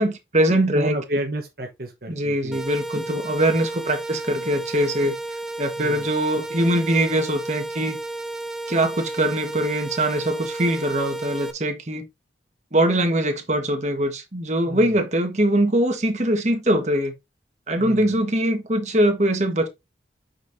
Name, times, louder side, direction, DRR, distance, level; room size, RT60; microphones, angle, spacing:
voice 1, 0.0-1.0 2.1-5.2 5.6-8.0 8.7-12.1 12.7-17.1 17.7-19.7, right 1 dB, 40° right, 1.5 m, -22 dB
voice 2, 0.7-2.6 5.8-6.1 14.7-15.0 17.8-18.2, right 1 dB, 55° right, 1.1 m, -32 dB
sound 1, 2.5-11.5, right 2 dB, 5° right, 0.8 m, -32 dB
8.5 x 5.6 x 2.7 m
head